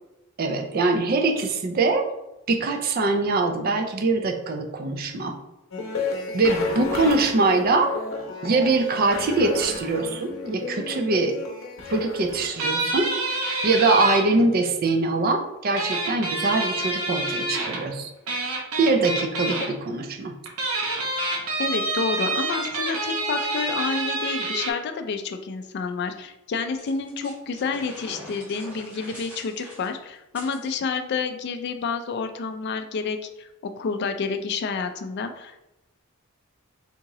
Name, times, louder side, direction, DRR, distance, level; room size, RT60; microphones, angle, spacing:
voice 1, 0.4-2.1 2.5-5.4 6.3-7.9 8.4-11.4 11.9-13.1 13.6-18.1 18.8-20.3, right 3 dB, 40° right, 5 dB, 0.4 m, -23 dB
sound 1, 5.7-12.7, left 4 dB, 65° left, 0.7 m, -32 dB
sound 2, 12.6-14.2 15.8-17.8 18.3-19.7 20.5-24.7, right 2 dB, 80° right, 0.7 m, -27 dB
voice 2, 21.6-35.6, left 5 dB, 50° left, 8 dB, 0.3 m, -29 dB
sound 3, 26.8-30.7, equal, 5° right, 1.2 m, -43 dB
3.6 x 2.8 x 2.9 m, 0.93 s
head